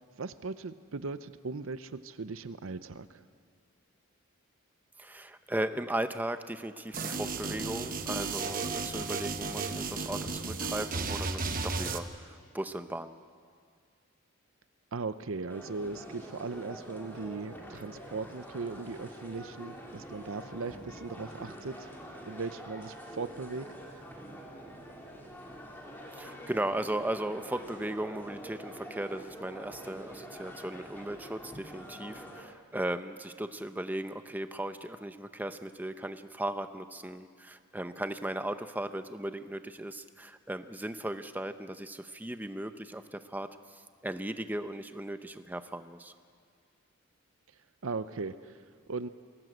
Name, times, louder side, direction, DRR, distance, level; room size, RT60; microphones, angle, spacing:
voice 1, 0.2-3.2 14.9-21.9 22.3-23.7 47.8-48.6 48.9-49.1, right 4 dB, 65° right, 13 dB, 0.6 m, -38 dB
voice 2, 5.0-13.2 17.7-17.8 26.2-46.1, right 1 dB, 10° right, 9 dB, 0.6 m, -37 dB
sound 1, 6.9-12.0, right 4 dB, 40° right, 1.0 m, -34 dB
sound 2, 15.5-32.4, equal, 10° left, 2.3 m, -46 dB
22.0 x 17.5 x 7.9 m, 2.1 s
head